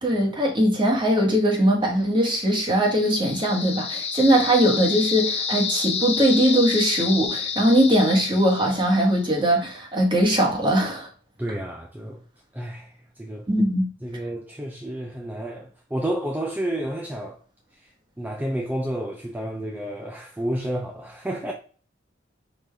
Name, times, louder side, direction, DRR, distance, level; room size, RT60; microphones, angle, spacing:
voice 1, 0.0-11.1 13.5-13.9, equal, 25° right, 1.4 m, -20 dB
sound 1, 2.4-9.3, left 5 dB, 35° left, 0.6 m, -29 dB
voice 2, 11.4-12.2 12.5-13.5 14.0-17.4 17.7-21.5, right 1 dB, 10° right, 0.5 m, -31 dB
5.3 x 2.6 x 3.3 m
head